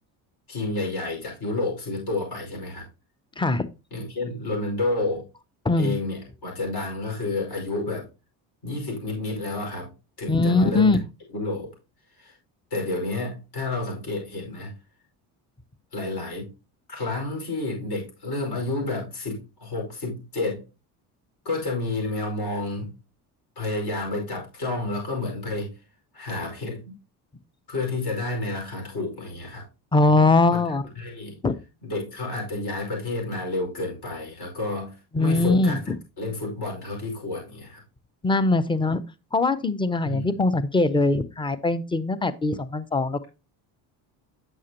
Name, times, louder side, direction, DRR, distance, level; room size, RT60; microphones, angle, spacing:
voice 1, 0.5-2.9 3.9-5.2 5.8-8.0 8.6-9.9 10.2-11.0 11.3-11.7 12.2-12.3 12.7-14.7 15.9-16.5 16.9-20.6 21.4-22.9 23.5-25.7 26.1-26.9 27.7-29.7 30.5-30.6 30.9-31.4 31.8-35.8 36.2-37.8 40.0-40.3, left 2 dB, 60° left, 5.1 m, -30 dB
voice 2, 3.4-3.7 5.6-6.0 10.3-11.0 29.9-30.8 31.4-31.5 35.1-35.8 38.2-39.0 39.3-43.3, left 2 dB, 10° left, 0.6 m, -21 dB
8.7 x 6.4 x 2.9 m
cardioid pair, 95°, 43 cm